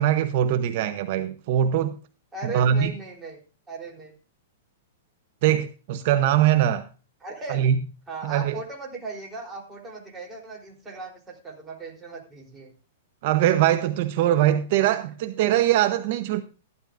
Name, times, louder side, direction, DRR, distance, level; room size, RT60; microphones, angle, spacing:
voice 1, 0.0-2.0 2.4-2.9 5.4-6.9 7.5-7.8 8.2-8.6 13.2-16.4, right 11 dB, 55° right, 0.7 m, -22 dB
voice 2, 2.3-4.2 7.2-7.6 8.1-12.7, right 3 dB, 15° right, 3.4 m, -37 dB
13.5 x 12.0 x 2.5 m
hypercardioid pair, 135°, 0 cm